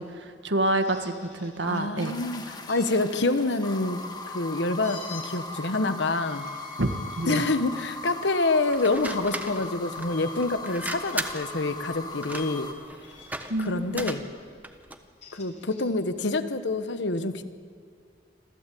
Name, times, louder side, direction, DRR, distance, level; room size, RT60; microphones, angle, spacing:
voice 1, 0.0-2.2 6.8-7.4 13.5-14.1, right 1 dB, 90° right, 8 dB, 1.6 m, -28 dB
sound 1, 0.6-1.8 2.7-3.6 4.8-5.3 6.1-7.4 8.1-8.3 10.1-10.2 11.1-11.6 12.3-12.6 13.0-13.5 14.9-15.9, left 5 dB, 45° left, 3.5 m, -48 dB
voice 2, 1.6-4.0 4.3-6.4 7.3-12.7 13.6-14.2 15.3-17.4, left 2 dB, 80° left, 11 dB, 1.2 m, -27 dB
sound 2, 2.0-12.7, left 2 dB, 25° left, 1.5 m, -39 dB
sound 3, 8.7-15.1, right 2 dB, 10° right, 1.1 m, -37 dB
26.5 x 15.0 x 8.4 m, 2.2 s
head